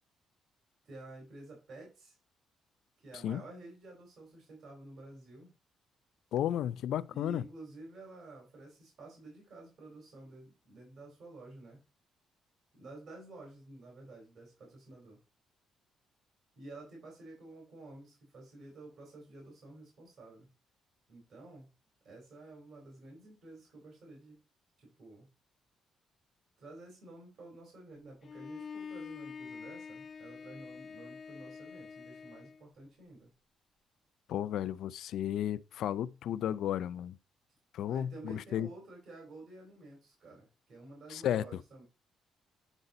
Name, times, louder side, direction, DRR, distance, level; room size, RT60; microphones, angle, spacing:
voice 1, 0.8-2.2 3.0-5.5 7.1-11.8 12.7-15.2 16.6-20.5 21.1-21.7 22.0-24.4 24.8-25.3 26.6-33.3 37.8-41.8, right 2 dB, 60° right, 4.1 m, -51 dB
voice 2, 6.3-7.4 34.3-37.2 37.7-38.7 41.1-41.4, left 11 dB, 75° left, 0.4 m, -33 dB
Bowed string instrument, 28.2-32.6, left 6 dB, 40° left, 1.1 m, -46 dB
9.0 x 4.1 x 3.9 m
cardioid pair, 90°, 0 cm